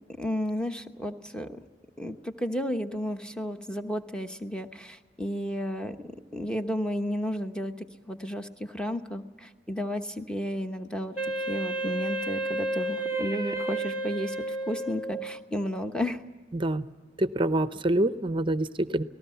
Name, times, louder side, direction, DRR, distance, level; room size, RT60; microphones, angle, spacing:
voice 1, 0.2-1.6 2.0-6.0 6.3-11.2 11.5-16.2, equal, 5° left, 6 dB, 1.1 m, -33 dB
Wind instrument woodwind instrument, 11.2-15.4, right 1 dB, 45° left, 2.8 m, -31 dB
voice 2, 16.5-16.9 17.2-19.0, right 1 dB, 30° right, 12 dB, 0.7 m, -26 dB
29.0 x 19.0 x 5.7 m, 1.3 s
head